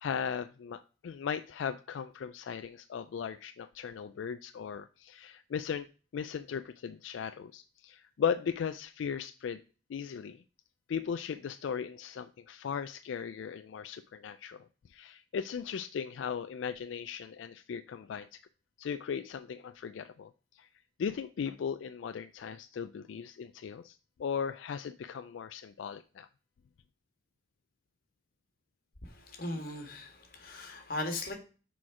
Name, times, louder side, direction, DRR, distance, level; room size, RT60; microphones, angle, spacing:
voice 1, 0.0-5.9 6.1-9.6 9.9-10.4 10.9-18.4 18.8-20.7 21.0-26.3, left 7 dB, 80° left, 10 dB, 0.3 m, -37 dB
voice 2, 29.0-31.3, left 2 dB, 50° left, 3 dB, 1.6 m, -38 dB
6.3 x 4.5 x 4.8 m, 0.36 s
head